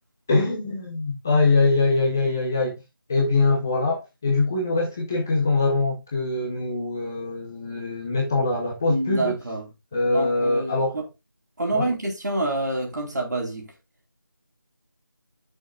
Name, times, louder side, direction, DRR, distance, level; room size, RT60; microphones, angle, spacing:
voice 1, 0.3-2.8 3.1-9.4 9.9-11.0 11.7-11.9, left 3 dB, 10° left, 0.6 m, -23 dB
voice 2, 8.9-9.6 10.0-11.1 11.6-13.7, right 2 dB, 55° right, 4.1 m, -27 dB
14.0 x 6.5 x 2.4 m
figure-of-eight pair, 170°, 11 cm